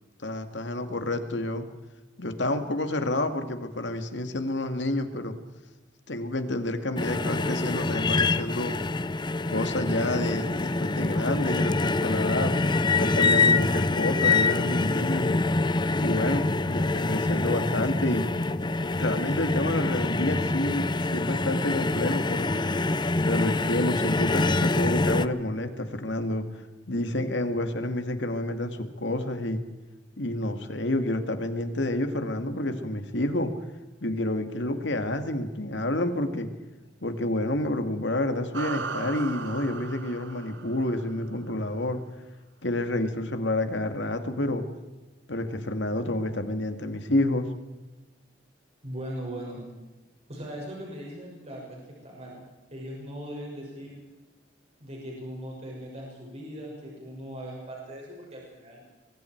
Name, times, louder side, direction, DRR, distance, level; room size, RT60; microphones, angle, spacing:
voice 1, 0.2-1.7 2.2-5.4 6.1-8.8 9.5-12.5 13.0-15.4 16.0-18.3 18.8-22.5 23.2-26.4 26.9-29.6 30.2-33.5 34.0-36.5 37.0-42.0 42.6-44.6 45.3-47.5, left 1 dB, 70° left, 7 dB, 2.2 m, -29 dB
sound 1, 7.0-25.3, left 3 dB, 25° left, 0.7 m, -25 dB
sound 2, 38.5-41.3, right 4 dB, 70° right, 1.2 m, -37 dB
voice 2, 48.8-49.6 50.3-52.4 52.7-54.0 54.8-58.8, equal, 35° right, -3 dB, 6.4 m, -39 dB
25.5 x 23.5 x 4.7 m, 1.2 s
head